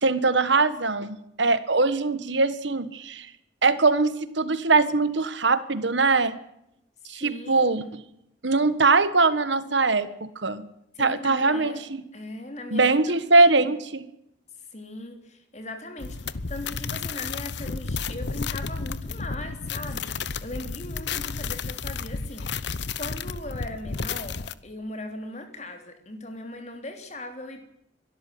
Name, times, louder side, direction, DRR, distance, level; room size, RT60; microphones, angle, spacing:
voice 1, 0.0-3.3 3.6-6.4 7.1-7.8 8.4-10.7 11.0-12.0 12.7-14.0, right 3 dB, 75° right, 13 dB, 1.5 m, -22 dB
voice 2, 7.2-7.9 10.9-11.8 12.1-13.3 14.7-27.6, left 1 dB, 35° left, 6 dB, 3.1 m, -39 dB
sound 1, 16.0-24.5, left 5 dB, 65° left, 0.9 m, -32 dB
23.5 x 13.0 x 9.3 m, 0.81 s
head